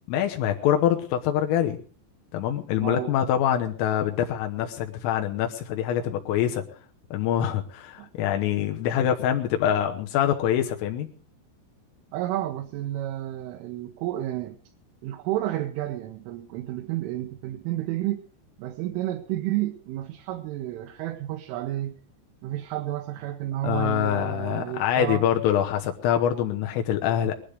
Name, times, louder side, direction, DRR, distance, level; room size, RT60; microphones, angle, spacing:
voice 1, 0.1-1.8 2.3-6.6 7.1-11.1 23.6-27.4, left 10 dB, 85° left, 3.7 m, -25 dB
voice 2, 2.8-3.1 8.0-8.1 12.1-14.6 15.0-18.3 18.6-22.0 22.4-25.3, right 14 dB, 80° right, 3.4 m, -31 dB
20.5 x 12.0 x 4.9 m
omnidirectional pair, 5.8 m